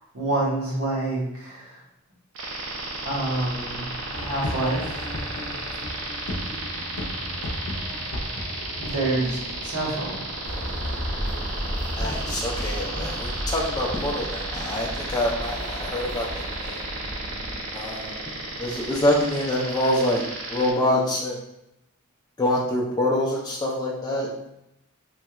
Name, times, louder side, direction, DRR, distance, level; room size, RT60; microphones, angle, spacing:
voice 1, 0.1-1.8 3.0-3.8 4.2-5.1 8.8-10.2, right 2 dB, 85° right, -5 dB, 1.2 m, -27 dB
sound 1, 2.3-20.7, right 2 dB, 65° right, 0.6 m, -34 dB
sound 2, 4.1-11.6, left 1 dB, 75° left, 0.5 m, -36 dB
sound 3, 10.4-17.6, equal, 25° right, 0.6 m, -33 dB
voice 2, 12.0-16.8 17.7-18.3 18.6-21.4 22.4-24.3, left 1 dB, 20° left, -4 dB, 0.4 m, -26 dB
3.1 x 2.3 x 2.9 m, 0.84 s
head